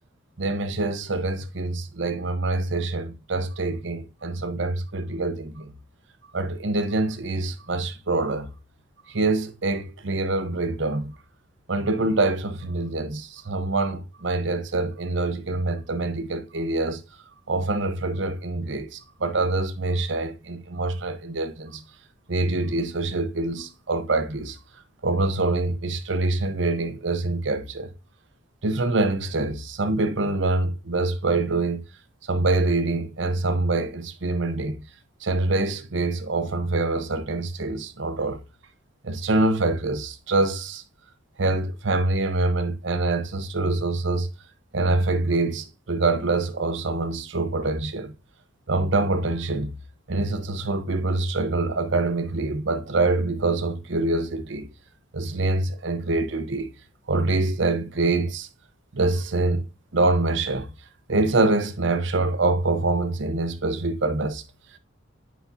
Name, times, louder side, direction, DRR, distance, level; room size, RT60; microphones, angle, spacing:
voice 1, 0.4-5.7 6.3-8.5 9.1-11.1 11.7-17.0 17.5-21.8 22.3-24.6 25.0-27.9 28.6-31.8 32.3-34.8 35.2-38.4 39.0-40.8 41.4-44.3 44.7-48.1 48.7-49.8 50.1-54.7 55.1-56.7 57.1-58.5 58.9-59.6 59.9-60.7 61.1-64.4, right 2 dB, 60° right, 0.8 m, -25 dB
8.2 x 5.1 x 2.7 m
head